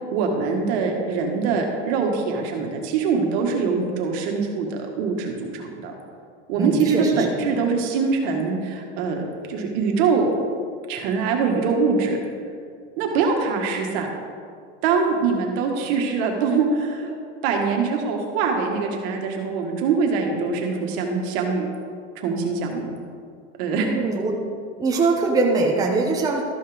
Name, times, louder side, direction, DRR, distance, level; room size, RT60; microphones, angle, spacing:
voice 1, 0.1-5.9 6.5-9.2 9.5-10.3 10.9-12.2 13.0-14.1 14.8-17.2 17.4-21.7 22.2-22.9 23.6-23.9, right 5 dB, 60° right, 1 dB, 1.8 m, -23 dB
voice 2, 6.6-7.5 23.7-24.4 24.8-26.4, right 3 dB, 10° right, -2 dB, 0.8 m, -22 dB
13.0 x 5.6 x 5.1 m, 2.2 s
supercardioid pair, 140°, 36 cm